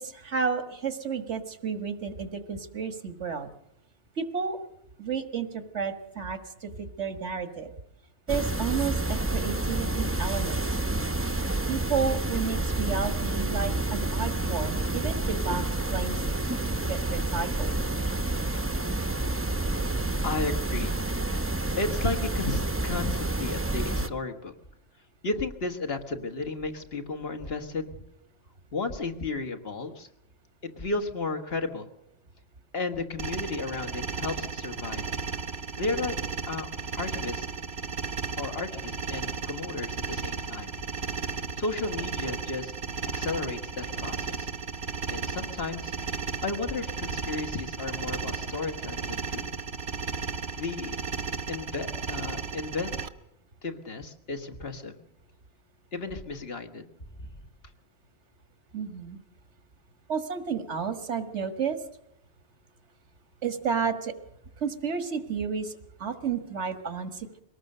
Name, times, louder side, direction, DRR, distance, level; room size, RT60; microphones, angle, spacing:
voice 1, 0.0-3.5 4.2-4.6 5.0-7.7 8.3-10.6 11.7-16.2 16.9-17.7 58.7-59.2 60.1-61.8 63.4-64.1 64.6-67.3, right 6 dB, 90° right, 9 dB, 1.8 m, -31 dB
sound 1, 8.3-24.1, right 2 dB, 15° right, 0.7 m, -29 dB
voice 2, 20.2-21.5 21.8-24.5 25.2-28.0 28.7-30.1 30.6-31.9 32.7-35.0 35.8-36.1 36.5-36.7 36.9-37.5 38.4-40.8 41.6-42.7 43.1-44.5 45.1-45.9 46.4-49.5 50.5-51.0 51.5-53.1 53.6-54.9 55.9-56.9 57.2-57.3, left 3 dB, 60° left, 6 dB, 1.8 m, -33 dB
sound 2, 33.2-53.1, right 5 dB, 70° right, 1.2 m, -34 dB
22.5 x 18.5 x 6.6 m, 0.83 s
omnidirectional pair, 1.1 m